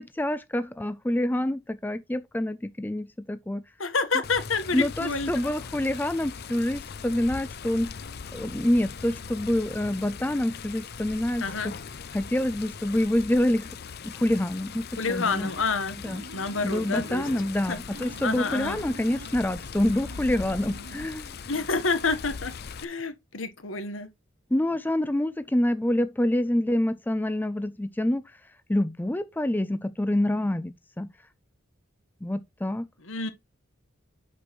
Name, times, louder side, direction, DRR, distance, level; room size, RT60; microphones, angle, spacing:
voice 1, 0.0-3.6 4.7-7.9 8.3-11.7 12.1-13.7 14.0-15.5 16.0-16.2 16.6-21.4 24.5-28.2 28.7-31.1 32.2-32.9, left 1 dB, 10° left, 0.4 m, -27 dB
voice 2, 3.8-5.5 11.4-11.7 15.0-16.0 16.3-17.2 17.7-17.8 18.2-18.8 21.5-22.5 22.8-24.1 33.0-33.3, left 4 dB, 80° left, 1.3 m, -28 dB
Water, 4.2-22.8, left 6 dB, 55° left, 0.6 m, -40 dB
sound 1, 15.0-15.7 16.1-17.6 17.9-19.4 19.7-21.1, right 2 dB, 85° right, 1.6 m, -45 dB
8.2 x 6.2 x 3.1 m
head